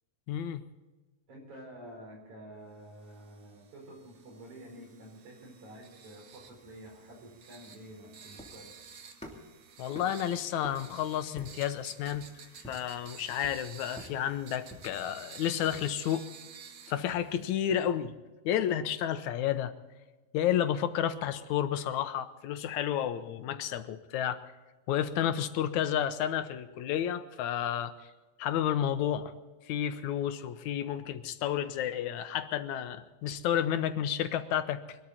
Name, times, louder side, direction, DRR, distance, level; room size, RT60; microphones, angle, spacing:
voice 1, 0.3-0.6 9.8-12.3 12.7-16.3 16.9-18.1 18.5-19.7 20.3-24.4 24.9-28.1 28.4-29.3 29.7-35.0, left 10 dB, 85° left, 10 dB, 2.3 m, -31 dB
voice 2, 1.3-8.8, right 1 dB, 75° right, 1 dB, 6.1 m, -49 dB
sound 1, 3.0-17.9, right 6 dB, 55° right, 1.5 m, -52 dB
sound 2, 6.3-15.0, equal, ahead, 2.4 m, -51 dB
23.0 x 13.0 x 4.3 m, 1.2 s
omnidirectional pair, 3.4 m